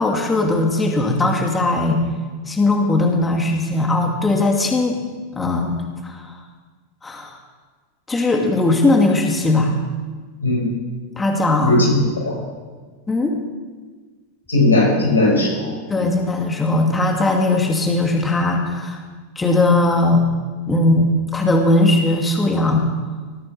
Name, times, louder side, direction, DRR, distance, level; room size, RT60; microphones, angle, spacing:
voice 1, 0.0-2.0 2.5-5.0 5.3-5.8 6.0-6.4 7.0-7.4 8.1-9.7 11.2-11.8 13.1-13.4 15.9-19.0 19.4-20.2 20.7-22.9, left 2 dB, 15° left, 1 dB, 2.4 m, -18 dB
voice 2, 11.6-12.4 14.5-16.1, left 2 dB, 90° left, -1 dB, 6.7 m, -18 dB
18.5 x 9.4 x 7.2 m, 1.4 s
hypercardioid pair, 95°, 0 cm